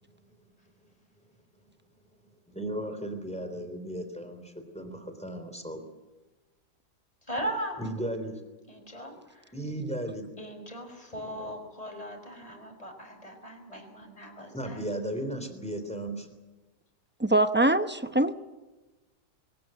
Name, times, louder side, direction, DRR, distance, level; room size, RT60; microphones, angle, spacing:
voice 1, 2.5-5.9 7.8-8.4 9.5-10.3 14.5-16.3, right 1 dB, 5° left, 7 dB, 3.5 m, -35 dB
voice 2, 7.3-7.8 8.7-9.4 10.4-14.8, right 1 dB, 20° left, 3 dB, 5.4 m, -38 dB
voice 3, 17.2-18.3, right 2 dB, 15° right, 10 dB, 0.3 m, -23 dB
22.5 x 20.0 x 7.8 m, 1.2 s
omnidirectional pair, 1.8 m